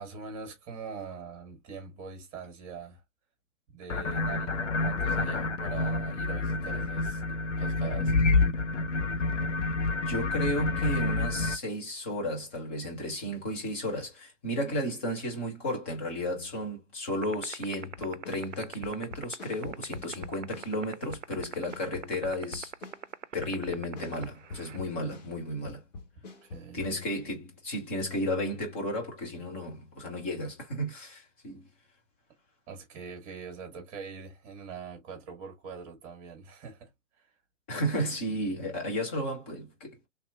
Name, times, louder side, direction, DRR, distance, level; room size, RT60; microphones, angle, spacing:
voice 1, 0.0-3.0 3.7-8.1 8.4-8.5 26.2-27.1 32.7-36.9, right 5 dB, 25° right, 1.2 m, -43 dB
sound 1, 3.9-11.6, left 3 dB, 70° left, 0.7 m, -28 dB
voice 2, 10.1-22.7 23.3-25.8 26.7-31.7 37.7-40.1, equal, 10° left, 0.5 m, -33 dB
sound 2, 17.2-24.8, right 8 dB, 75° right, 0.5 m, -37 dB
sound 3, 18.0-20.8 21.1-25.4 25.7-26.9, left 3 dB, 35° left, 1.0 m, -45 dB
3.3 x 2.7 x 2.2 m
figure-of-eight pair, 125°, 38 cm